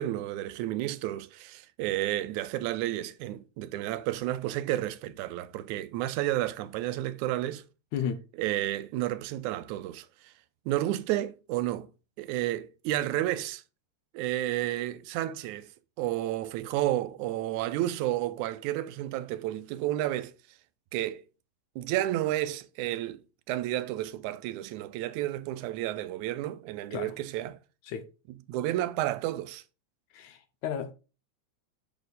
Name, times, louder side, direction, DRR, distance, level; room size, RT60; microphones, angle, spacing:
voice 1, 0.0-7.6 8.4-10.3 10.7-11.9 12.2-13.6 14.1-15.7 16.0-20.3 20.9-21.2 21.8-23.2 23.5-27.6 28.5-29.6, right 14 dB, 90° right, 2.0 m, -31 dB
voice 2, 7.9-8.2 26.9-27.1 27.9-28.1 30.1-30.9, left 8 dB, 85° left, 2.3 m, -33 dB
7.1 x 4.2 x 5.0 m
omnidirectional pair, 3.3 m